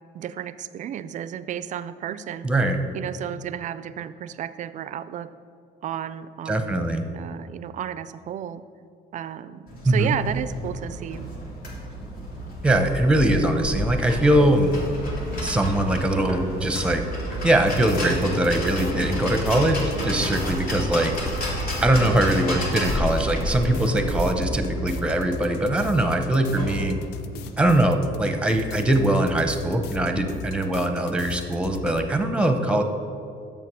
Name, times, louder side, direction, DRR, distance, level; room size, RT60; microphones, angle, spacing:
voice 1, 0.1-2.5 2.9-5.3 5.8-6.7 7.1-8.6 9.1-11.3 19.9-20.2 30.1-30.4, right 9 dB, 45° right, 15 dB, 0.4 m, -33 dB
voice 2, 2.4-2.8 6.5-7.1 9.8-10.2 12.6-14.7 15.4-17.0 17.4-21.1 21.8-26.9 27.6-32.8, right 1 dB, 5° right, 6 dB, 0.7 m, -22 dB
sound 1, 9.7-27.7, equal, 60° left, 2.2 m, -31 dB
sound 2, 17.7-32.1, left 7 dB, 90° left, 0.4 m, -38 dB
6.9 x 5.8 x 6.1 m, 2.4 s
cardioid pair, 110°, 17 cm